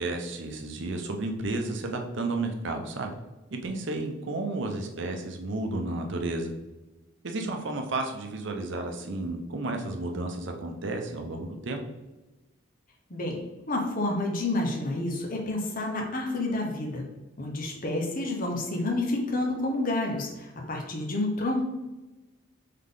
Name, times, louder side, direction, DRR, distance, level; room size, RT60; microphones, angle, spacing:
voice 1, 0.0-3.1 3.5-6.5 7.2-11.8, right 2 dB, 60° right, 4 dB, 0.7 m, -32 dB
voice 2, 13.7-17.0 17.4-21.6, left 2 dB, 40° left, 1 dB, 0.8 m, -29 dB
3.8 x 3.7 x 3.7 m, 1.1 s
head